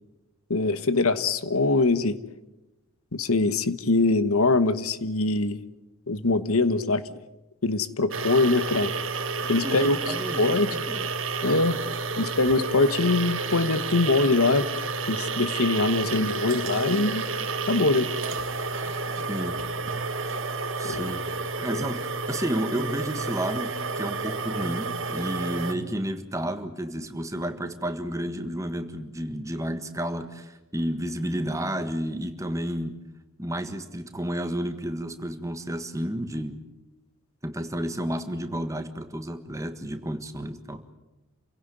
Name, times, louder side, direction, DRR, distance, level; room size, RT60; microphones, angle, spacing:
voice 1, 0.5-2.2 3.1-5.6 6.1-7.2 7.6-8.9 9.5-10.7 11.4-11.8 12.2-14.7 15.1-17.2 17.7-18.1 20.8-21.1, left 3 dB, 80° left, 13 dB, 1.3 m, -23 dB
sound 1, 8.1-25.7, right 4 dB, 60° right, 2.0 m, -30 dB
voice 2, 9.6-11.1 19.3-19.6 20.8-21.2 21.6-33.0 33.4-36.6 37.4-40.8, equal, 15° right, 8 dB, 1.6 m, -31 dB
28.5 x 17.0 x 9.4 m, 1.0 s
head